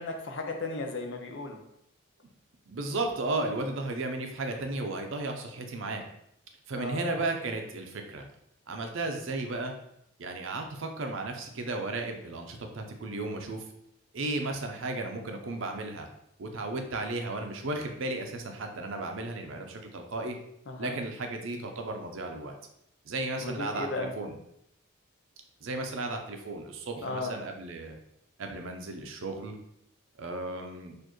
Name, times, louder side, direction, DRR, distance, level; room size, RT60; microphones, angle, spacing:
voice 1, 0.0-1.6 6.7-7.0 20.7-21.0 23.4-24.1 27.0-27.4, left 3 dB, 60° left, 4 dB, 0.6 m, -35 dB
voice 2, 2.7-6.0 6.7-8.2 8.7-9.7 10.2-13.6 14.1-16.1 16.4-20.3 20.8-22.5 23.0-24.3 25.6-28.0 28.4-29.5 30.2-30.9, right 2 dB, 70° right, 4 dB, 0.5 m, -34 dB
4.3 x 2.5 x 3.0 m, 0.77 s
head